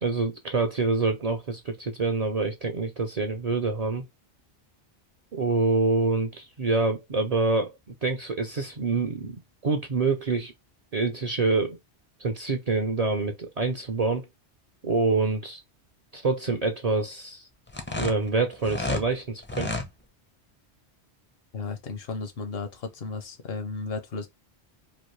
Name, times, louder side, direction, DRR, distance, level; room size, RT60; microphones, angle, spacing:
voice 1, 0.0-4.0 5.3-9.4 9.6-10.5 10.9-11.8 12.2-14.3 14.8-15.6 16.1-17.5 18.0-19.7, right 3 dB, 50° right, 0.5 m, -26 dB
sound 1, 17.7-19.1 19.4-19.9, left 2 dB, 15° left, 0.4 m, -30 dB
voice 2, 21.5-24.3, left 4 dB, 65° left, 0.9 m, -34 dB
3.1 x 2.5 x 3.1 m
omnidirectional pair, 1.1 m